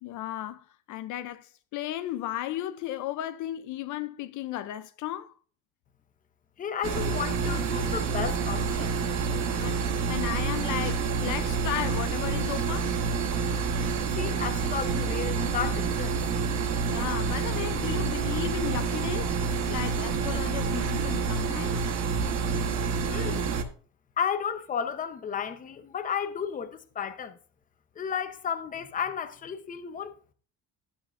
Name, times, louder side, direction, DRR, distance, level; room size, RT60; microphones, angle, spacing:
voice 1, 0.0-5.4 9.6-9.8 10.1-13.0 16.9-19.3 19.7-21.9, left 13 dB, 60° left, 0.5 m, -35 dB
voice 2, 6.6-8.9 14.1-16.2 23.1-23.6 24.2-27.4 28.0-30.1, left 7 dB, 25° left, 0.7 m, -33 dB
sound 1, 6.8-23.6, right 5 dB, 50° right, 1.2 m, -28 dB
11.5 x 8.5 x 2.5 m
cardioid pair, 175°, 34 cm